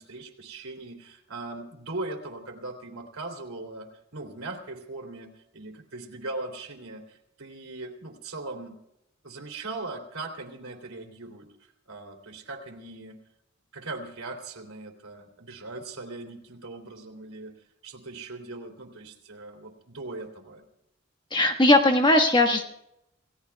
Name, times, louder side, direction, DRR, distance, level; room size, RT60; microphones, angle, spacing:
voice 1, 0.0-8.7 9.2-13.2 13.7-20.6, right 2 dB, 90° right, 2 dB, 3.1 m, -39 dB
voice 2, 21.3-22.7, left 2 dB, 20° left, 5 dB, 1.5 m, -19 dB
28.5 x 17.0 x 2.3 m, 0.83 s
head